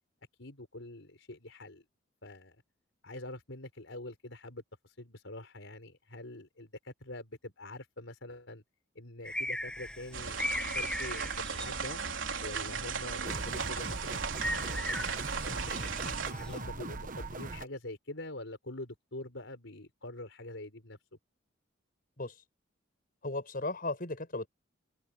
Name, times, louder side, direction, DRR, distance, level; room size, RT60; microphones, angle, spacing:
voice 1, 0.4-1.8 2.2-2.6 3.0-8.6 8.9-12.0 12.4-15.0 15.3-21.0, left 2 dB, 75° left, 5.1 m, -45 dB
sound 1, 9.2-16.6, left 1 dB, 5° left, 1.9 m, -40 dB
sound 2, 10.1-16.3, right 5 dB, 75° right, 3.8 m, -36 dB
sound 3, 13.3-17.7, right 3 dB, 45° right, 1.2 m, -40 dB
voice 2, 23.2-24.5, left 2 dB, 50° left, 6.3 m, -36 dB
head